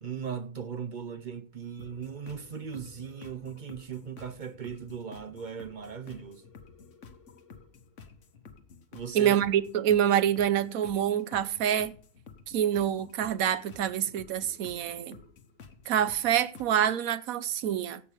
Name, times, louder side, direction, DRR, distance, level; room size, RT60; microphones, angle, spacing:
voice 1, 0.0-6.4 8.9-9.4, right 7 dB, 45° right, 0.7 m, -38 dB
sound 1, 1.8-17.0, left 5 dB, 60° left, 1.4 m, -52 dB
voice 2, 9.1-12.0 12.5-15.2 15.9-18.0, right 10 dB, 80° right, 1.2 m, -26 dB
16.0 x 7.4 x 5.0 m
omnidirectional pair, 1.5 m